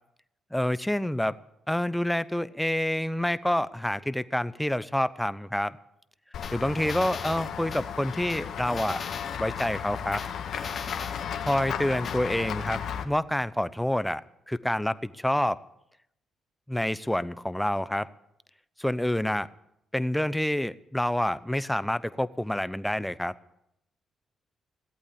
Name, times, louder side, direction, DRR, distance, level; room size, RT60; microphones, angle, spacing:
voice 1, 0.5-1.3 1.7-5.8 6.5-9.0 9.4-10.2 11.4-14.2 14.5-15.6 16.7-18.1 18.8-19.5 19.9-23.3, left 1 dB, 5° left, 16 dB, 0.7 m, -28 dB
Run / Walk footsteps / Bell, 6.3-13.0, left 8 dB, 70° left, 1.7 m, -35 dB
sound 1, 6.4-7.8 8.3-9.7 10.2-11.6 12.0-12.2, left 5 dB, 50° left, 2.7 m, -39 dB
17.5 x 8.4 x 8.6 m, 0.80 s
supercardioid pair, 65°, 0 cm